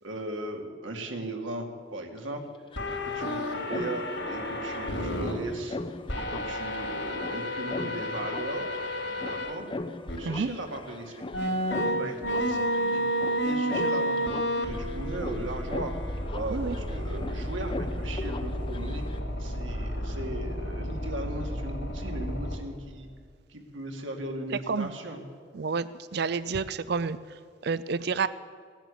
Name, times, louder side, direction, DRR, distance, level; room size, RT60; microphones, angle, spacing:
voice 1, 0.0-2.5 2.9-5.8 6.1-8.8 9.0-9.7 10.1-11.5 11.8-13.0 13.4-15.9 16.3-19.0 19.4-23.1 23.5-25.2, right 1 dB, 80° right, 3 dB, 2.2 m, -37 dB
sound 1, 2.2-2.3 2.4-19.2, left 2 dB, 25° left, 0.6 m, -40 dB
sound 2, 2.8-5.3 6.1-9.5 10.1-10.2 11.3-22.6, equal, 75° left, 3.4 m, -31 dB
voice 2, 25.6-27.2 27.6-28.3, right 5 dB, 55° right, 15 dB, 0.4 m, -29 dB
16.5 x 10.5 x 8.3 m, 2.1 s
head